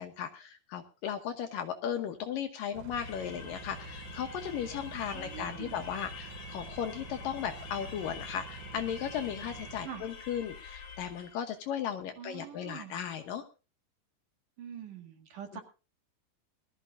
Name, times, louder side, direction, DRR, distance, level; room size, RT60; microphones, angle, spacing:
voice 1, 0.0-13.4 15.5-15.6, left 8 dB, 70° left, 7 dB, 2.4 m, -36 dB
sound 1, 2.7-9.9, right 10 dB, 75° right, 1.9 m, -48 dB
sound 2, 2.9-11.5, left 6 dB, 50° left, 2.7 m, -46 dB
voice 2, 5.1-5.8 9.8-10.0 12.2-13.0 14.6-15.6, right 8 dB, 60° right, 5 dB, 3.1 m, -44 dB
21.0 x 13.5 x 2.6 m, 0.32 s
omnidirectional pair, 4.7 m